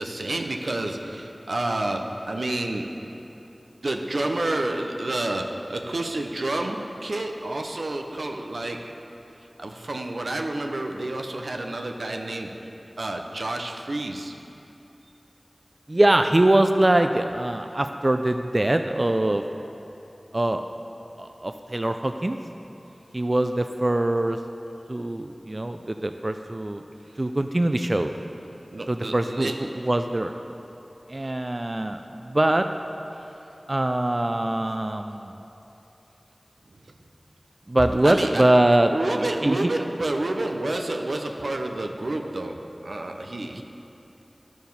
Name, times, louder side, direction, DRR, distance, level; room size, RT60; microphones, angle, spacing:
voice 1, 0.0-3.1 3.8-8.9 9.6-12.5 13.0-14.4 28.7-29.9 31.2-31.3 38.0-38.4 38.9-43.6, right 2 dB, 90° right, 3 dB, 0.6 m, -29 dB
voice 2, 15.9-19.4 20.3-20.6 21.2-22.4 23.1-24.4 24.9-26.8 27.2-28.1 28.9-30.3 31.1-32.0 32.3-32.7 33.7-35.4 37.7-38.9 39.2-39.7 43.4-43.6, right 1 dB, 45° right, 7 dB, 0.3 m, -23 dB
11.5 x 4.7 x 5.3 m, 2.9 s
wide cardioid pair, 45°, 0 cm